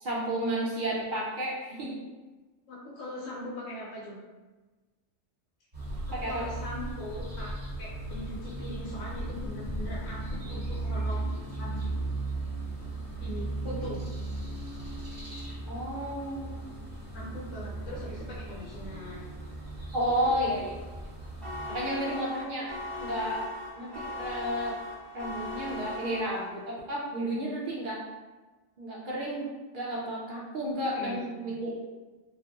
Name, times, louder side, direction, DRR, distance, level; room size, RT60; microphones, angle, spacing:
voice 1, 0.0-2.0 6.1-6.4 13.6-13.7 15.7-16.6 19.9-20.7 21.7-22.7 23.0-23.4 23.8-24.8 25.1-28.0 28.8-29.5 29.7-31.8, right 1 dB, 65° right, -4 dB, 0.5 m, -32 dB
voice 2, 2.7-4.2 6.1-11.3 11.5-11.9 13.2-14.0 17.1-19.3 20.2-20.4 30.9-31.2, left 1 dB, 75° left, -6 dB, 0.9 m, -41 dB
sound 1, 5.7-21.7, right 2 dB, 35° right, 1.0 m, -36 dB
sound 2, 21.4-26.7, left 1 dB, ahead, 0.3 m, -39 dB
2.7 x 2.5 x 2.2 m, 1.3 s
omnidirectional pair, 1.3 m